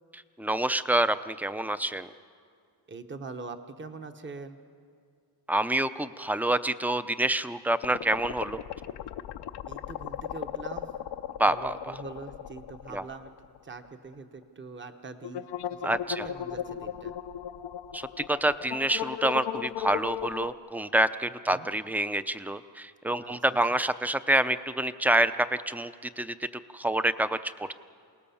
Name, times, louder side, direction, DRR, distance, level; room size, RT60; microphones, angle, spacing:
voice 1, 0.1-2.1 5.5-8.6 11.4-12.0 12.9-13.0 15.8-16.2 17.9-26.5 26.7-27.7, right 1 dB, 5° right, 12 dB, 0.6 m, -27 dB
voice 2, 2.9-4.6 9.7-10.9 11.5-13.3 13.6-17.1 21.5-21.7 23.2-23.8, right 4 dB, 30° right, 7 dB, 1.1 m, -43 dB
sound 1, 7.8-13.6 13.8-13.9 15.2-20.5, left 11 dB, 85° left, 0.8 m, -36 dB
28.0 x 18.5 x 7.1 m, 2.2 s
cardioid pair, 110°, 39 cm